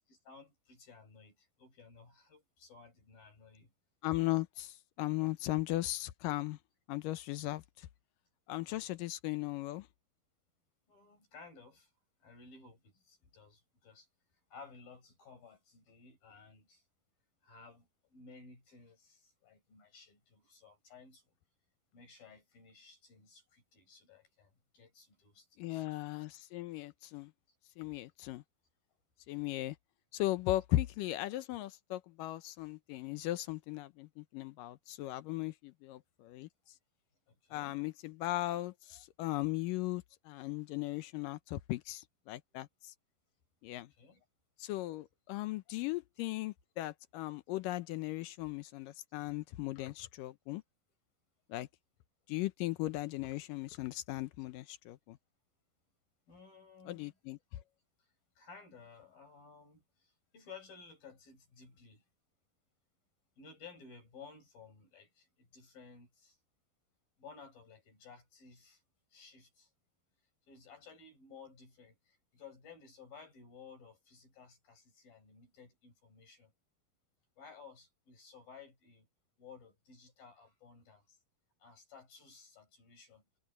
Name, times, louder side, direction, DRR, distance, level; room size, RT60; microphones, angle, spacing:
voice 1, 0.1-3.7 5.2-5.3 8.6-8.8 10.9-11.9 12.2-14.1 14.5-16.8 17.4-21.3 21.9-25.9 37.3-37.8 43.7-44.3 56.3-57.2 58.0-58.1 58.4-62.1 63.4-66.4 67.2-68.8 69.1-69.7 70.5-76.5 77.4-79.1 79.4-81.2 81.6-83.2, left 5 dB, 60° left, 7.4 m, -56 dB
voice 2, 4.0-6.6 6.9-7.6 8.5-9.9 25.6-27.3 27.8-28.4 29.3-29.8 30.1-36.5 37.5-42.7 43.6-43.9 44.6-50.6 51.5-51.7 52.3-55.2 56.9-57.4, left 16 dB, 80° left, 2.0 m, -37 dB
omnidirectional pair, 4.6 m